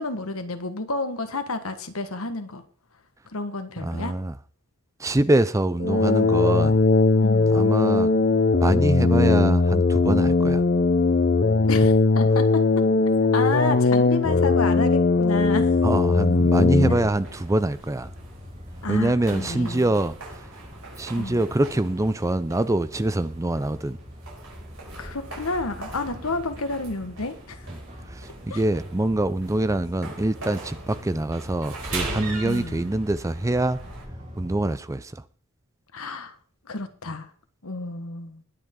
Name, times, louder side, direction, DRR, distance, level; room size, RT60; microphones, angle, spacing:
voice 1, 0.0-2.6 3.2-4.1 7.2-7.6 11.7-12.6 13.3-15.7 18.8-19.9 21.2-21.4 25.0-27.7 28.5-28.6 32.4-32.9 35.9-36.4 36.6-37.3 37.6-38.4, left 3 dB, 75° left, 1.5 m, -30 dB
voice 2, 3.8-4.3 5.0-6.9 7.5-8.1 8.6-10.6 15.8-18.1 18.9-20.1 21.0-24.0 28.1-33.8 34.4-35.2, right 1 dB, 15° right, 0.4 m, -24 dB
sound 1, 5.8-17.1, left 3 dB, 45° left, 0.8 m, -19 dB
sound 2, 15.3-34.8, equal, 35° right, 3.5 m, -43 dB
sound 3, 17.1-34.0, right 3 dB, 75° right, 6.2 m, -41 dB
21.0 x 8.1 x 3.8 m
head